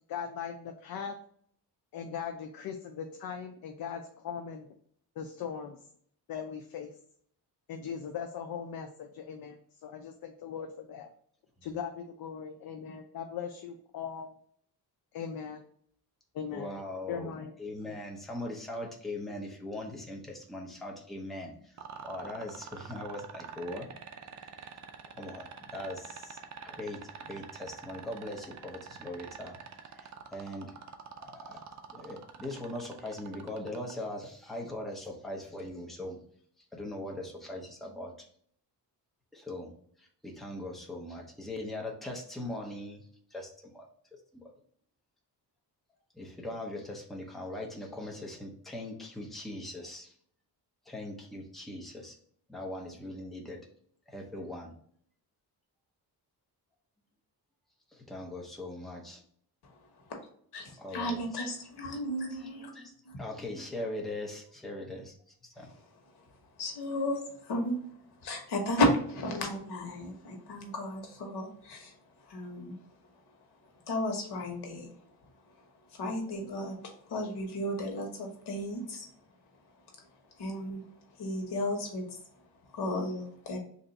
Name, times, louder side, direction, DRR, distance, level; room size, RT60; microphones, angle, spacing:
voice 1, 0.1-1.2 1.9-4.7 5.2-5.8 6.3-6.9 7.7-11.1 11.6-14.3 15.1-15.6 16.3-16.7 17.1-17.5, left 7 dB, 60° left, 5 dB, 0.5 m, -39 dB
voice 2, 16.5-17.3 17.6-23.9 24.2-24.7 25.0-29.6 29.8-30.7 31.2-31.6 31.9-36.2 36.6-38.1 39.3-43.9 44.4-44.5 46.1-50.1 50.9-52.2 52.5-53.6 54.1-54.7 57.9-59.2 60.8-61.4 61.9-62.0 62.3-65.1 65.4-65.7, left 1 dB, ahead, 0 dB, 0.6 m, -41 dB
sound 1, 21.8-33.9 35.6-35.7, right 7 dB, 45° right, 0.5 m, -45 dB
voice 3, 60.5-62.7 63.0-63.2 66.6-67.8 68.2-71.9 72.2-72.8 73.9-74.9 75.9-79.1 80.4-80.8 81.2-82.0 82.7-83.6, left 1 dB, 80° left, 1 dB, 1.2 m, -33 dB
3.3 x 2.6 x 4.0 m, 0.62 s
wide cardioid pair, 140°, 39 cm